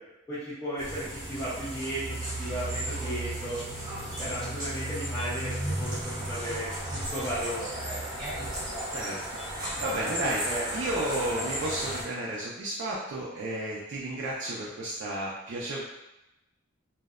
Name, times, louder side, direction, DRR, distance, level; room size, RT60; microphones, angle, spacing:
voice 1, 0.3-2.0 2.4-3.6 4.2-8.0 10.1-10.7, right 1 dB, 15° left, -12 dB, 0.6 m, -35 dB
sound 1, 0.8-12.0, right 1 dB, 20° right, 0.8 m, -34 dB
voice 2, 9.8-15.8, right 1 dB, 60° right, -5 dB, 0.3 m, -32 dB
2.6 x 2.0 x 2.3 m, 0.94 s
head